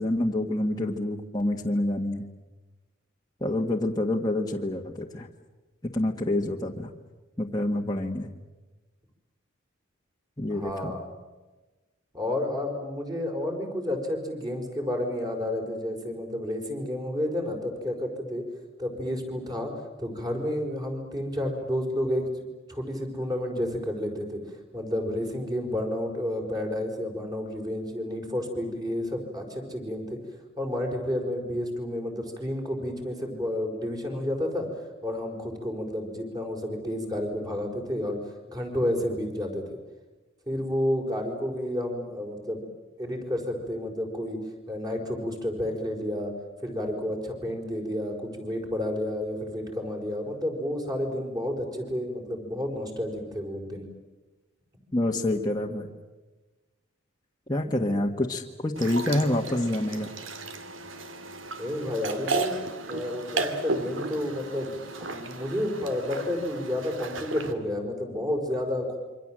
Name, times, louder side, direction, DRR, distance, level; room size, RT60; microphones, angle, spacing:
voice 1, 0.0-2.2 3.4-5.3 5.9-6.9 7.4-8.3 10.4-10.9 54.9-55.9 57.5-60.1, left 1 dB, 20° left, 0 dB, 1.6 m, -27 dB
voice 2, 10.5-11.1 12.1-18.4 18.8-19.7 20.0-24.4 24.7-30.2 30.6-34.7 35.0-39.8 40.5-42.6 43.0-44.4 44.7-46.3 46.6-53.9 61.6-62.6 62.9-69.0, left 1 dB, 20° right, 2 dB, 5.0 m, -31 dB
sound 1, 58.8-67.5, right 3 dB, 75° right, 2.4 m, -34 dB
27.5 x 24.5 x 7.7 m, 1.2 s
head